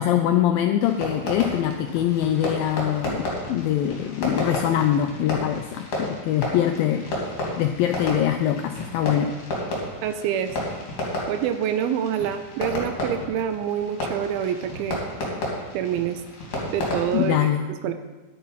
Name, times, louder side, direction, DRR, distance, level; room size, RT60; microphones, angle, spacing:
voice 1, 0.0-9.3 17.1-17.7, left 11 dB, 85° left, 6 dB, 2.0 m, -23 dB
Fireworks, 0.8-17.3, left 1 dB, 50° left, 4.1 m, -32 dB
voice 2, 10.0-10.5 11.3-15.0 15.7-16.2 16.7-17.5 17.8-17.9, right 9 dB, 80° right, 9 dB, 2.3 m, -26 dB
10.5 x 9.8 x 5.6 m, 1.2 s
omnidirectional pair, 4.7 m